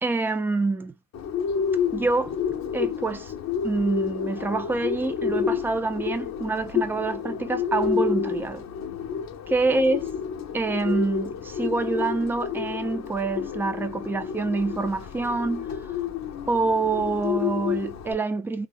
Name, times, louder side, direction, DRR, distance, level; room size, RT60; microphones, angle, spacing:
voice 1, 0.0-0.9 1.9-2.4 2.7-3.3 3.6-8.7 9.5-10.0 10.5-15.7 16.5-18.7, right 3 dB, 5° right, 0.3 m, -26 dB
Bird, 1.1-18.1, left 7 dB, 35° left, 1.0 m, -30 dB
3.4 x 2.3 x 3.0 m
hypercardioid pair, 75°, 50 cm